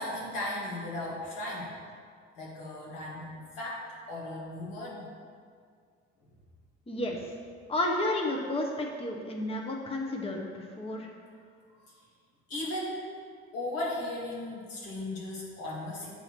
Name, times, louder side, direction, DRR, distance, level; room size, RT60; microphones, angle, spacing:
voice 1, 0.0-1.7 2.4-5.1 11.3-11.4 12.5-13.1 13.5-16.1, left 1 dB, 75° left, -5 dB, 1.6 m, -36 dB
voice 2, 6.9-7.3 7.7-11.1, left 1 dB, 15° left, 0 dB, 0.8 m, -32 dB
6.9 x 2.9 x 5.8 m, 2.1 s
hypercardioid pair, 50°, 35 cm